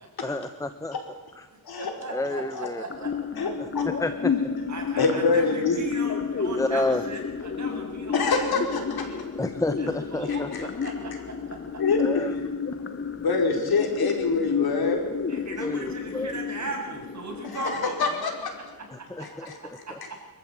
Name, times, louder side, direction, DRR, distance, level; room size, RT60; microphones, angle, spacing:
voice 1, 0.2-1.0 1.3-1.5 2.1-2.8 3.6-3.7 4.0-4.1 6.5-7.0 9.4-10.5 12.0-12.7 13.3-13.4 15.6-16.3 18.9-20.2, left 2 dB, 10° left, 10 dB, 1.0 m, -30 dB
voice 2, 1.5-3.1 4.7-8.4 8.8-9.2 9.8-11.6 15.3-18.4 19.0-19.3, right 2 dB, 50° right, 0 dB, 7.6 m, -38 dB
sound 1, 2.9-18.9, left 6 dB, 35° left, 1.3 m, -31 dB
voice 3, 3.4-3.9 5.0-5.8 8.1-9.1 10.5-10.9 11.8-12.2 13.1-15.0 17.5-18.5 19.5-19.6, left 4 dB, 80° left, 2 dB, 5.1 m, -25 dB
26.0 x 14.5 x 8.8 m, 1.3 s
wide cardioid pair, 125°, 37 cm